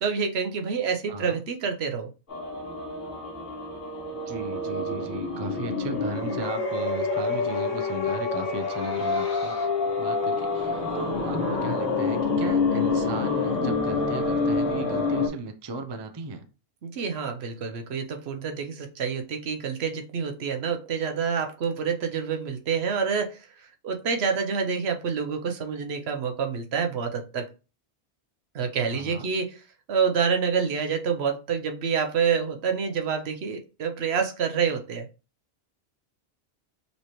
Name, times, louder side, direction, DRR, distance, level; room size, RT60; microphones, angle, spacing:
voice 1, 0.0-2.1 16.8-23.5 23.8-27.5 28.5-29.6 29.9-35.1, right 6 dB, 75° right, 1.0 m, -27 dB
voice 2, 1.1-1.4 4.3-9.5 10.0-16.4 28.9-29.3, right 2 dB, 35° right, 0.5 m, -36 dB
sound 1, 2.3-15.3, left 3 dB, 50° left, 1.6 m, -27 dB
5.3 x 3.1 x 3.0 m
omnidirectional pair, 1.1 m